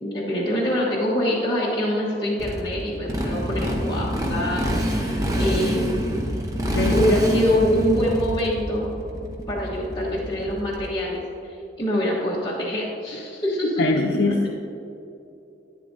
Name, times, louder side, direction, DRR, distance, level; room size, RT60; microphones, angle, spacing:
voice 1, 0.0-6.0 6.9-8.9 9.5-14.3, equal, 20° left, -6 dB, 1.2 m, -24 dB
Motorcycle, 2.4-11.0, equal, 20° right, 0.8 m, -26 dB
voice 2, 6.7-7.1 13.8-14.5, left 3 dB, 75° left, 1 dB, 0.6 m, -23 dB
11.5 x 9.9 x 2.7 m, 2.8 s
head